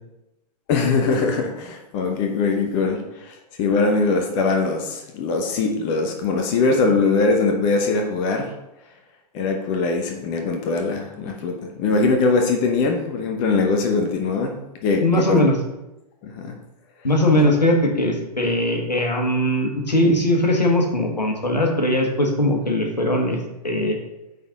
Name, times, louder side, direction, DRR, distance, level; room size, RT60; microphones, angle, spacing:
voice 1, 0.7-8.5 9.3-15.4 16.2-16.5, left 3 dB, 35° left, 3 dB, 0.9 m, -22 dB
voice 2, 15.0-15.6 17.0-23.4 23.6-24.0, left 1 dB, 80° left, 2 dB, 1.5 m, -20 dB
9.0 x 4.1 x 3.8 m, 0.95 s
figure-of-eight pair, 110°, 21 cm